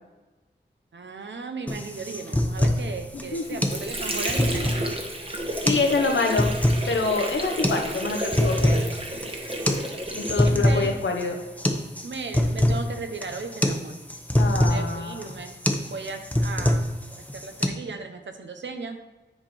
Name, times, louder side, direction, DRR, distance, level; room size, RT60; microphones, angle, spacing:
voice 1, 0.9-4.9 9.6-9.9 10.4-11.0 12.0-14.0 14.7-15.6 15.9-16.9 17.2-19.0, right 4 dB, 80° right, 6 dB, 0.9 m, -36 dB
sound 1, 1.7-17.7, left 1 dB, 10° left, 0.8 m, -25 dB
voice 2, 3.1-3.6 5.6-6.5 6.9-8.8 10.2-11.4 14.4-15.3, left 3 dB, 85° left, 3 dB, 1.1 m, -26 dB
Water / Sink (filling or washing), 3.1-10.8, right 1 dB, 30° right, 1.1 m, -32 dB
10.0 x 4.5 x 4.3 m, 1.2 s
wide cardioid pair, 90°, 19 cm